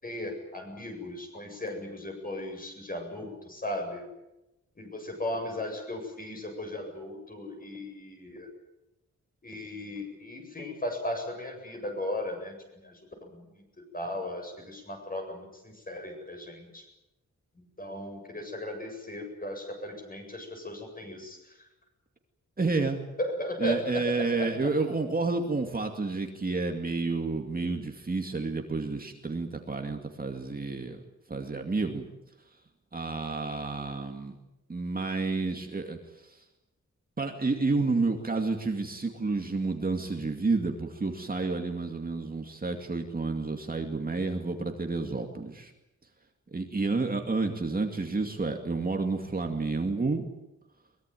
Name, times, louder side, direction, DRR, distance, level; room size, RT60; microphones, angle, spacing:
voice 1, 0.0-4.0 4.8-8.5 9.4-13.6 13.9-16.9 17.6-21.4 23.2-24.7, left 1 dB, 30° left, 3 dB, 7.9 m, -36 dB
voice 2, 22.6-23.0 23.6-31.0 31.3-32.1 32.9-34.4 34.7-36.4 37.2-45.7 46.5-50.2, right 3 dB, 30° right, 4 dB, 2.4 m, -30 dB
23.0 x 22.0 x 9.3 m, 0.92 s
wide cardioid pair, 150°, 30 cm